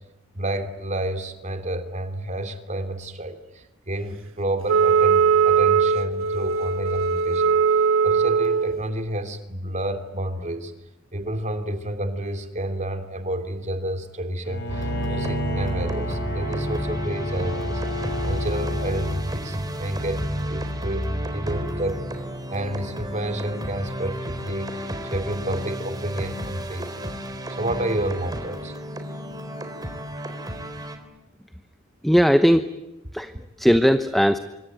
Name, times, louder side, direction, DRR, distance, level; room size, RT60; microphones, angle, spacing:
voice 1, 0.3-7.5 8.0-10.7 11.1-17.8 18.3-22.0 22.5-27.1 27.6-28.7, right 1 dB, 35° right, 8 dB, 2.9 m, -30 dB
Wind instrument woodwind instrument, 4.7-8.8, right 6 dB, 70° right, 1.6 m, -20 dB
Bowed string instrument, 14.4-19.2, equal, 60° left, 4.0 m, -32 dB
sound 1, 14.7-31.0, equal, 20° right, 4.0 m, -31 dB
voice 2, 32.0-32.7 33.1-34.4, equal, ahead, 9 dB, 1.0 m, -18 dB
26.5 x 25.0 x 9.2 m, 0.92 s
head